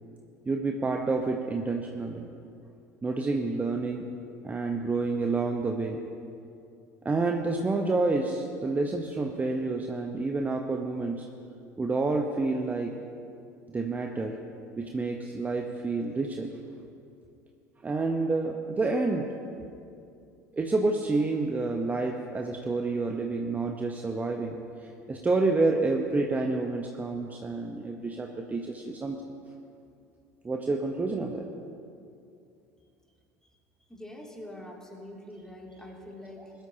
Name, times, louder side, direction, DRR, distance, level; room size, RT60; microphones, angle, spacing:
voice 1, 0.5-2.3 3.0-4.0 4.4-6.0 7.0-11.3 11.8-12.9 13.7-14.4 14.8-16.5 17.8-19.3 20.5-29.2 30.4-31.5 36.4-36.5, right 3 dB, 15° right, 2 dB, 1.0 m, -29 dB
voice 2, 33.9-36.5, left 1 dB, 5° left, -1 dB, 2.8 m, -44 dB
21.5 x 12.5 x 2.9 m, 2.5 s
figure-of-eight pair, 70°, 9 cm